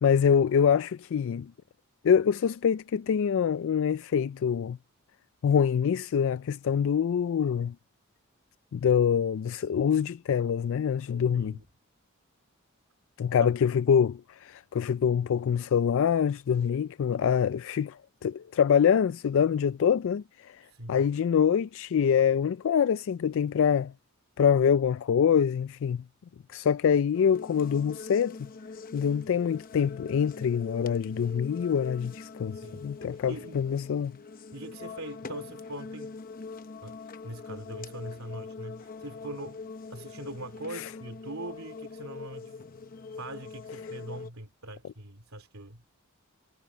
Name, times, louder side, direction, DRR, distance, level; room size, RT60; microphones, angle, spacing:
voice 1, 0.0-1.5 2.0-4.8 5.4-7.7 8.7-11.6 13.2-20.6 20.9-23.9 24.4-26.0 26.5-28.5 28.9-34.2 40.7-40.9, left 7 dB, 65° left, 0.3 m, -25 dB
voice 2, 11.3-11.6 13.4-13.5 20.6-21.1 32.5-33.7 34.5-36.2 36.8-37.0 37.2-42.5 43.2-45.8, right 2 dB, 80° right, 3.1 m, -42 dB
sound 1, 27.1-44.3, left 4 dB, 45° left, 0.8 m, -43 dB
head